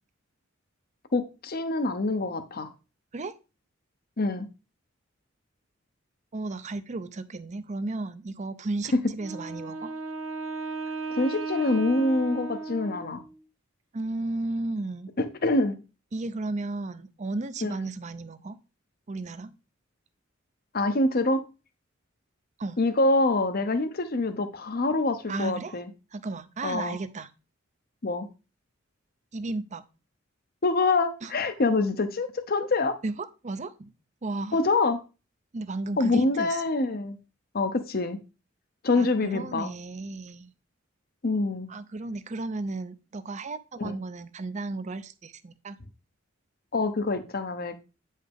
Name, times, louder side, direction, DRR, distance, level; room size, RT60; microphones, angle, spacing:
voice 1, 1.1-2.7 4.2-4.5 8.9-9.0 11.1-13.2 15.2-15.8 17.6-17.7 20.7-21.4 22.8-25.9 26.6-27.0 28.0-28.3 30.6-33.0 34.5-35.0 36.0-37.2 37.5-38.2 38.8-39.7 41.2-41.7 43.8-44.0 46.7-47.8, left 2 dB, 50° left, 0.8 m, -25 dB
voice 2, 6.3-9.9 13.9-15.1 16.1-18.6 19.1-19.6 22.6-22.8 25.3-25.8 26.1-27.3 29.3-29.8 31.2-31.3 33.0-33.9 34.2-34.6 35.5-36.6 39.0-40.5 41.7-45.8, right 2 dB, 35° right, 0.6 m, -34 dB
Wind instrument woodwind instrument, 9.2-13.4, right 4 dB, 85° right, 0.8 m, -35 dB
8.7 x 5.5 x 3.5 m
head